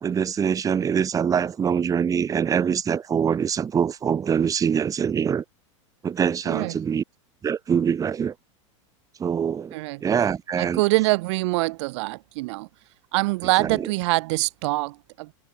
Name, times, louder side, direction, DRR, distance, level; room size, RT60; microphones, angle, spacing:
voice 1, 0.0-5.4 6.0-7.0 7.4-8.3 9.2-9.7 10.0-10.8 13.6-13.9, right 7 dB, 20° right, 1.6 m, -24 dB
voice 2, 6.5-6.8 9.7-10.0 10.6-12.7 13.1-15.3, right 22 dB, 60° right, 1.7 m, -24 dB
hypercardioid pair, 125°, 17 cm